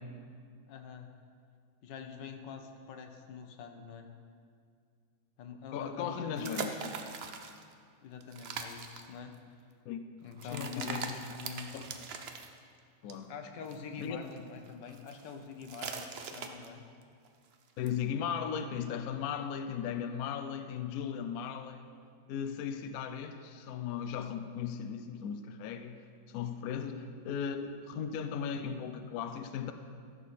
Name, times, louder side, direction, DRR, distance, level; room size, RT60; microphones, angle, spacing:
voice 1, 0.7-1.1 1.8-4.1 5.4-6.6 8.0-9.4 10.2-11.7 13.3-16.9 26.8-27.2, left 6 dB, 85° left, 6 dB, 1.5 m, -45 dB
voice 2, 5.7-6.8 9.8-10.0 10.4-11.3 11.7-11.9 13.0-13.3 14.0-14.2 17.8-21.9 22.3-29.7, left 7 dB, 70° left, 8 dB, 0.9 m, -37 dB
sound 1, 6.4-7.7 8.2-9.0 10.3-12.5 13.1-13.2 13.6-14.4 14.7-16.8 17.0-17.3 17.5-17.6 17.9-18.0, right 5 dB, 65° right, 0.6 m, -41 dB
14.5 x 6.6 x 4.2 m, 2.2 s
omnidirectional pair, 1.9 m